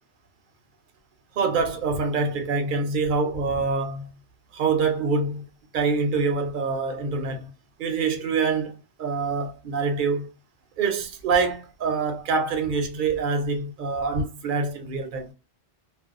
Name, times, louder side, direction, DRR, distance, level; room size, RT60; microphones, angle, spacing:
voice 1, 1.4-4.1 4.5-5.4 5.7-7.5 7.8-10.3 10.8-15.3, right 4 dB, 60° right, 0.6 m, -25 dB
2.5 x 2.1 x 2.4 m
omnidirectional pair, 1.1 m